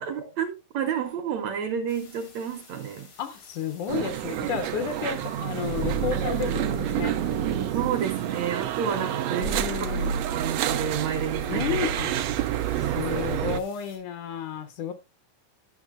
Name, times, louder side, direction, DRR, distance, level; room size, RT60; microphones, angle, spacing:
voice 1, 0.0-3.1 7.7-11.8 12.5-13.3, right 8 dB, 70° right, 1.8 m, -31 dB
sound 1, 1.9-14.0, left 4 dB, 90° left, 4.3 m, -52 dB
voice 2, 3.2-7.1 9.4-10.2 11.5-12.3 12.9-14.9, left 8 dB, 70° left, 2.4 m, -32 dB
sound 2, 3.9-13.6, right 10 dB, 85° right, 1.5 m, -28 dB
12.0 x 6.4 x 2.5 m
omnidirectional pair, 3.8 m